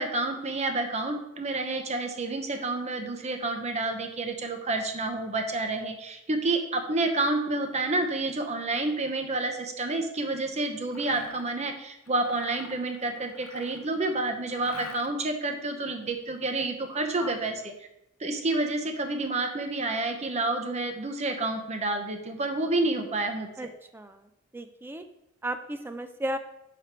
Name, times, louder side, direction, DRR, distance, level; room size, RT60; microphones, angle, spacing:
voice 1, 0.0-17.7 18.2-23.7, right 2 dB, 30° right, 5 dB, 0.8 m, -29 dB
Mechanisms, 10.8-11.5 12.0-14.0 14.5-15.4, left 5 dB, 70° left, 0.6 m, -45 dB
voice 2, 24.5-25.0 25.4-26.4, right 1 dB, 10° right, 9 dB, 0.3 m, -34 dB
5.0 x 4.7 x 5.7 m, 0.86 s
head